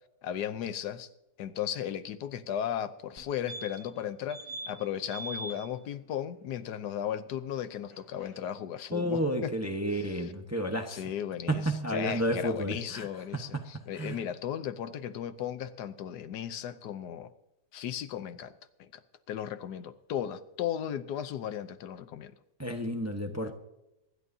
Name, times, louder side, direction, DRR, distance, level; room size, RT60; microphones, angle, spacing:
voice 1, 0.2-1.1 1.4-9.5 9.9-10.3 10.9-17.3 17.7-18.5 18.8-19.0 19.3-22.3 23.4-23.5, left 9 dB, 80° left, 12 dB, 1.3 m, -36 dB
sound 1, 3.2-3.3 3.5-4.0 4.3-4.7 5.1-5.5 7.9-8.0 8.2-8.3, right 1 dB, 20° left, 1.5 m, -40 dB
voice 2, 8.9-11.0 11.5-13.1 13.9-14.2 22.6-23.5, equal, 10° right, 4 dB, 0.9 m, -31 dB
24.5 x 11.5 x 2.8 m, 0.92 s
omnidirectional pair, 1.8 m